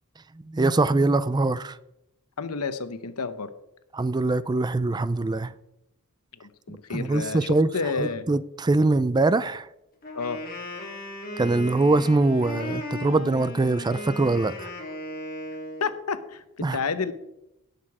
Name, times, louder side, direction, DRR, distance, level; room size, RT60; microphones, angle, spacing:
voice 1, 0.5-1.8 3.9-5.5 6.9-7.7 8.0-9.7 11.4-14.7 16.6-16.8, right 2 dB, 20° right, 0.4 m, -23 dB
voice 2, 2.4-3.5 6.4-8.3 10.1-10.4 15.8-17.1, left 4 dB, 85° left, 0.9 m, -30 dB
Wind instrument woodwind instrument, 10.0-15.9, left 1 dB, 40° left, 3.3 m, -36 dB
18.0 x 6.7 x 4.8 m
head